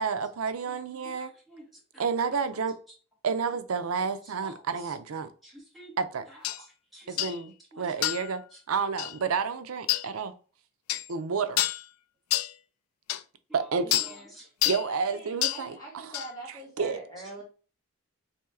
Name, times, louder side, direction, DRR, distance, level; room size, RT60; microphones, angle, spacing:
voice 1, 0.0-1.3 2.0-2.8 3.2-5.3 6.0-6.2 6.6-6.7 7.1-8.4 8.7-10.3 11.1-11.6 13.5-13.8 14.6-16.0 16.8-17.0, right 5 dB, 85° right, 0.5 m, -30 dB
voice 2, 0.7-1.6 1.9-2.0 4.2-5.0 5.4-5.9 6.3-6.7 6.9-7.4 7.7-8.1 8.5-8.6 13.5-13.7 14.0-14.5, equal, ahead, 1.9 m, -51 dB
sound 1, 6.4-6.6 7.2-7.4 8.0-8.3 9.0-9.1 9.9-10.1 10.9-11.1 11.6-11.8 12.3-12.5 13.1-13.2 13.9-14.1 14.6-14.9 15.4-15.6 16.1-16.3, left 14 dB, 85° left, 0.3 m, -27 dB
voice 3, 13.8-14.4 14.9-17.4, right 2 dB, 15° left, 1.9 m, -44 dB
4.4 x 3.1 x 3.6 m
head